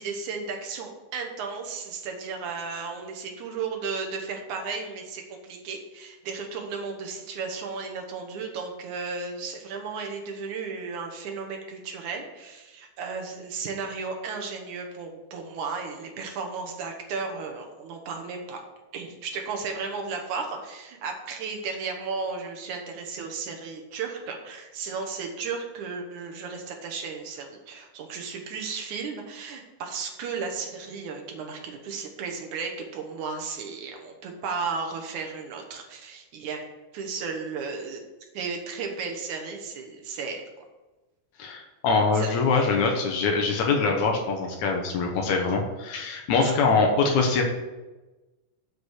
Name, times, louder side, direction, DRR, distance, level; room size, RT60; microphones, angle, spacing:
voice 1, 0.0-18.6 18.9-36.6 36.9-38.0 38.3-40.4 42.1-42.7 46.4-46.5 46.8-47.3, right 5 dB, 70° right, 2 dB, 2.5 m, -34 dB
voice 2, 41.4-47.4, left 4 dB, 70° left, 2 dB, 2.3 m, -23 dB
8.1 x 5.2 x 6.4 m, 1.1 s
omnidirectional pair, 3.6 m